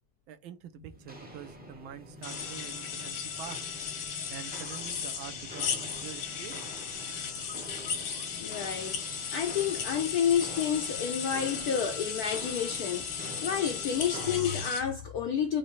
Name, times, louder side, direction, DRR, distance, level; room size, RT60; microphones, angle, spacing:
voice 1, 0.3-3.6 4.3-6.7, right 10 dB, 75° right, 1.5 m, -46 dB
Walk footsteps, 0.9-14.7, equal, 10° right, 0.5 m, -46 dB
sound 1, 2.2-14.8, left 7 dB, 90° left, 2.1 m, -36 dB
voice 2, 8.4-15.6, left 8 dB, 75° left, 0.9 m, -30 dB
5.4 x 2.7 x 3.1 m
omnidirectional pair, 2.3 m